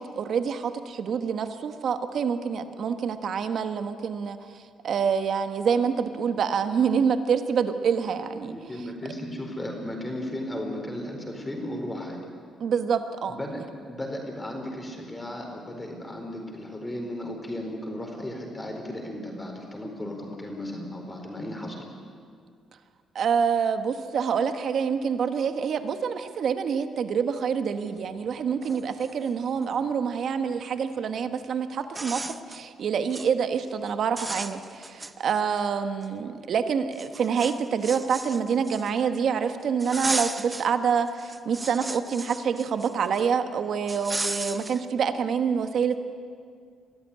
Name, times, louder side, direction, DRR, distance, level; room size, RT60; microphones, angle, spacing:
voice 1, 0.0-4.4 4.8-8.6 12.6-13.6 23.1-46.0, right 6 dB, 60° right, 9 dB, 1.2 m, -26 dB
voice 2, 8.4-12.2 13.3-13.6 13.9-21.8, left 1 dB, 15° left, 1 dB, 4.5 m, -35 dB
sound 1, 28.3-28.4 28.6-29.7 31.2-31.3 31.8-32.6 33.0-33.3 33.7-33.9 34.2-35.6 36.0-36.1 36.9-39.1 39.8-40.7 41.1-43.2 43.9-44.8, right 2 dB, 15° right, 0.8 m, -35 dB
22.5 x 14.0 x 9.9 m, 2.2 s
cardioid pair, 90°, 0 cm